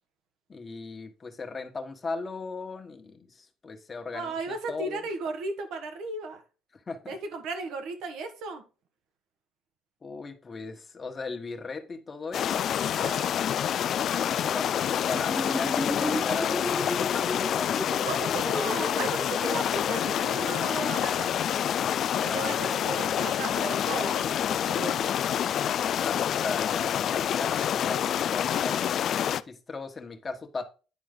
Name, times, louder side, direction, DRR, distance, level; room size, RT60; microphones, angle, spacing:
voice 1, 0.5-5.1 6.7-7.2 10.0-12.9 14.1-17.8 22.2-22.7 25.9-30.6, left 3 dB, 30° left, 1.4 m, -37 dB
voice 2, 4.1-6.4 7.1-8.6 13.0-13.3 18.0-21.3 22.2-25.1, right 3 dB, 80° right, 1.4 m, -35 dB
sound 1, 12.3-29.4, left 9 dB, 60° left, 0.3 m, -27 dB
sound 2, 15.1-20.5, equal, ahead, 0.6 m, -34 dB
9.5 x 4.5 x 3.8 m
cardioid pair, 90°, 0 cm